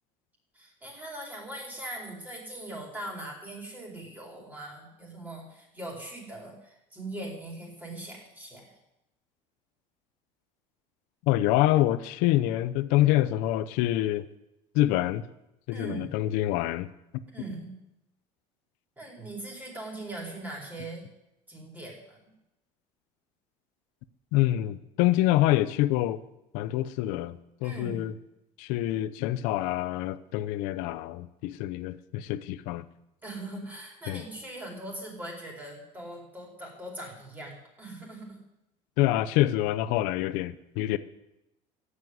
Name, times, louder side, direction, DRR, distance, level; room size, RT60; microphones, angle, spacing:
voice 1, 0.5-8.7 15.7-16.2 17.3-17.8 19.0-21.1 21.5-22.2 27.6-28.1 33.2-38.4, right 1 dB, 10° right, -1 dB, 4.7 m, -41 dB
voice 2, 11.3-14.3 14.7-15.3 15.7-17.2 24.3-26.2 26.5-28.1 28.6-32.9 34.1-34.2 39.0-41.0, left 15 dB, 65° left, 13 dB, 0.8 m, -26 dB
14.0 x 8.6 x 9.6 m, 0.87 s
cardioid pair, 155°, 14 cm